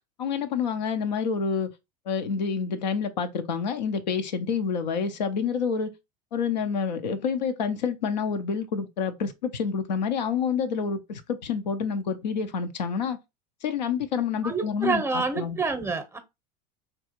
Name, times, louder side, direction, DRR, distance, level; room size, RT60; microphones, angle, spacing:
voice 1, 0.2-1.7 2.1-5.9 6.3-13.2 13.6-15.6, left 6 dB, 90° left, 0.5 m, -28 dB
voice 2, 14.4-16.2, right 4 dB, 10° right, 0.6 m, -27 dB
3.4 x 2.3 x 2.8 m
hypercardioid pair, 85°, 21 cm